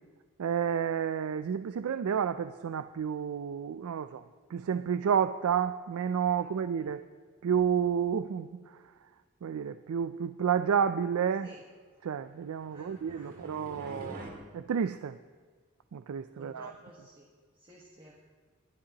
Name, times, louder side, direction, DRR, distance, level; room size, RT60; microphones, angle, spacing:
voice 1, 0.4-4.2 4.5-7.0 7.4-8.8 9.4-11.5 12.0-14.3 14.5-15.2 15.9-16.7, right 7 dB, 80° right, 12 dB, 0.4 m, -30 dB
sound 1, 12.4-14.3, right 1 dB, 45° right, 2.2 m, -46 dB
voice 2, 12.7-13.3 16.4-18.2, right 1 dB, 25° right, -2 dB, 1.4 m, -53 dB
21.5 x 11.5 x 2.9 m, 1.5 s
head